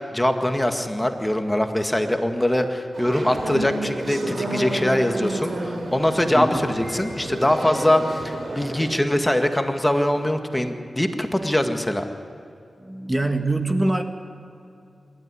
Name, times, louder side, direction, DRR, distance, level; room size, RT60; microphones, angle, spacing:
voice 1, 0.0-12.1, left 1 dB, 10° left, 6 dB, 1.8 m, -22 dB
sound 1, 2.9-8.9, right 1 dB, 65° right, 4.2 m, -30 dB
voice 2, 6.3-6.7 12.8-14.0, right 2 dB, 20° right, 6 dB, 1.8 m, -24 dB
26.5 x 13.0 x 9.8 m, 2.7 s
cardioid pair, 45°, 0 cm